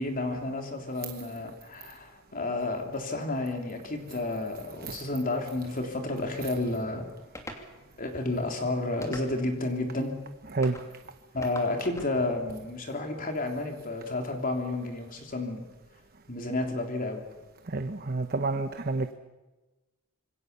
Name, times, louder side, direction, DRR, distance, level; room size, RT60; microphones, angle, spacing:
voice 1, 0.0-7.0 8.0-10.1 11.3-15.6 16.3-17.2, left 2 dB, 40° left, 3 dB, 3.4 m, -31 dB
voice 2, 4.5-5.0 6.4-6.5 10.4-10.8 17.7-19.1, right 3 dB, 45° right, 8 dB, 1.0 m, -30 dB
sound 1, 7.3-7.7 9.0-9.6 10.6-10.9 11.4-12.1, left 1 dB, 15° left, 2.8 m, -42 dB
26.5 x 22.0 x 6.9 m, 1.1 s
head